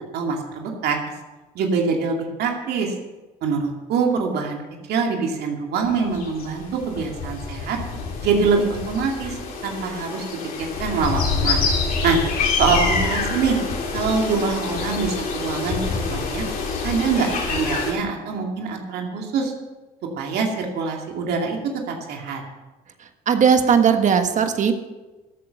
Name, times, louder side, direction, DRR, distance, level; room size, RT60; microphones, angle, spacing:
voice 1, 0.1-1.0 1.5-2.9 3.4-4.6 4.9-7.8 8.2-9.4 9.6-10.2 10.8-11.6 12.0-12.2 12.6-13.6 13.9-15.8 16.1-16.4 16.8-19.5 20.2-21.6 21.9-22.4, right 5 dB, 75° right, 1 dB, 2.4 m, -24 dB
sound 1, 5.8-17.9, left 4 dB, 60° left, 3.4 m, -26 dB
voice 2, 23.0-24.7, right 7 dB, 45° right, 7 dB, 1.5 m, -18 dB
13.5 x 8.7 x 6.9 m, 1.2 s
cardioid pair, 110°, 17 cm